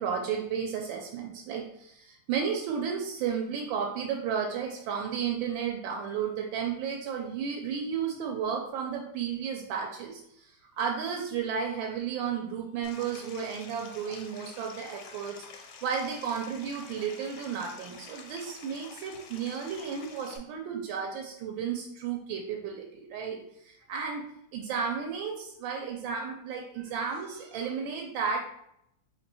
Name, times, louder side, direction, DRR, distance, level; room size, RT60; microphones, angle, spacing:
voice 1, 0.0-23.4 23.6-24.2 24.5-28.4, right 7 dB, 85° right, 1 dB, 1.3 m, -33 dB
Stream, 12.8-20.4, left 5 dB, 70° left, 0.9 m, -48 dB
3.2 x 2.6 x 4.1 m, 0.76 s
omnidirectional pair, 2.0 m